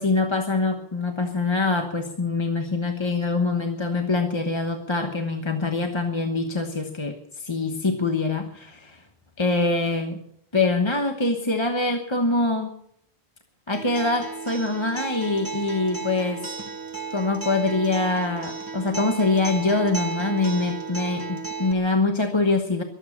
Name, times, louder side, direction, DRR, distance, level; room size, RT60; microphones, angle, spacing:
voice 1, 0.0-9.0 9.4-10.2 10.5-12.8 13.7-16.5 17.1-22.8, left 3 dB, 25° left, 4 dB, 1.2 m, -24 dB
Acoustic guitar, 13.7-21.7, right 4 dB, 20° right, 1.1 m, -34 dB
23.0 x 8.5 x 7.3 m, 0.72 s
omnidirectional pair, 1.1 m